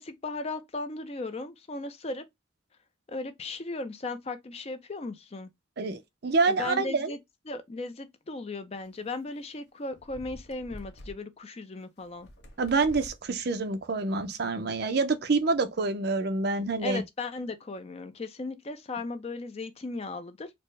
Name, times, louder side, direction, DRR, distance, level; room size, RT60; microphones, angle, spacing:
voice 1, 0.0-2.2 3.1-5.5 6.5-7.2 7.5-12.3 16.8-20.5, left 3 dB, 30° left, 0.4 m, -36 dB
voice 2, 5.8-7.1 12.6-17.0, right 3 dB, 55° right, 0.5 m, -27 dB
sound 1, 8.9-9.1 9.9-11.1 12.0-13.2 14.0-14.3, equal, 55° left, 0.9 m, -47 dB
4.3 x 2.1 x 3.1 m
head